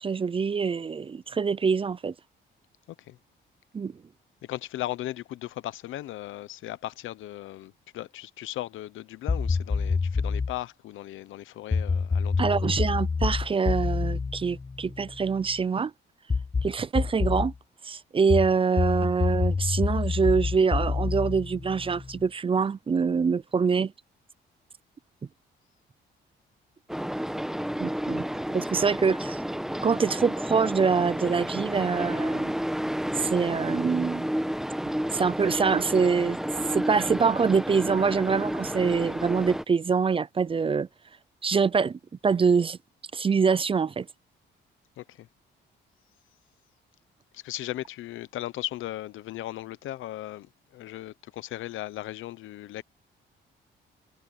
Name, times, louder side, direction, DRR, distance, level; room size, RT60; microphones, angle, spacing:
voice 1, 0.0-2.1 3.7-4.0 12.4-15.9 16.6-17.5 17.8-23.9 27.8-28.2 28.5-29.4 29.8-32.6 33.2-34.3 35.1-36.4 36.7-40.9 41.4-42.8 43.1-44.1, right 5 dB, 25° right, 0.5 m, -25 dB
voice 2, 4.4-12.5 45.0-45.3 47.3-52.8, left 15 dB, 80° left, 0.9 m, -37 dB
sound 1, 9.3-10.6 11.7-15.4 16.3-17.5 18.3-22.2, left 4 dB, 20° left, 0.8 m, -27 dB
sound 2, 26.9-39.6, equal, ahead, 1.2 m, -31 dB
cardioid pair, 90°, 20 cm